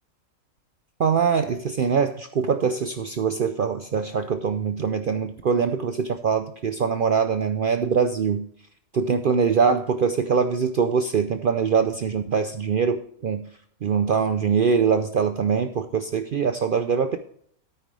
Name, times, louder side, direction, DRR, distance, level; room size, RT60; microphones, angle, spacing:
voice 1, 1.0-8.4 8.9-13.4 13.8-17.2, right 6 dB, 80° right, 9 dB, 0.4 m, -23 dB
9.7 x 9.1 x 3.2 m, 0.63 s
omnidirectional pair, 1.6 m